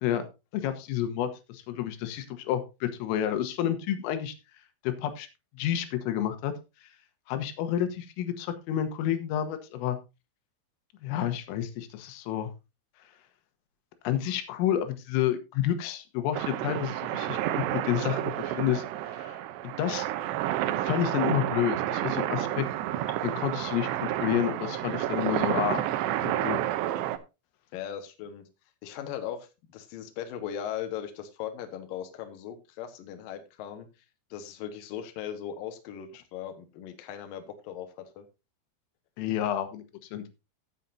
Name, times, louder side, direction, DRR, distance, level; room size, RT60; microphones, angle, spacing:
voice 1, 0.0-4.4 4.8-5.3 5.6-6.5 7.3-10.0 11.0-12.5 14.1-19.4 19.8-20.1 20.8-22.7 23.2-25.8 26.2-26.6 39.2-39.8 40.1-40.2, left 10 dB, 90° left, 9 dB, 3.8 m, -30 dB
sound 1, 16.3-27.2, right 13 dB, 90° right, 2.5 m, -30 dB
voice 2, 27.7-28.4 28.8-33.9 34.3-38.3, left 9 dB, 70° left, 7 dB, 2.2 m, -38 dB
16.0 x 7.4 x 2.7 m, 0.27 s
omnidirectional pair, 5.7 m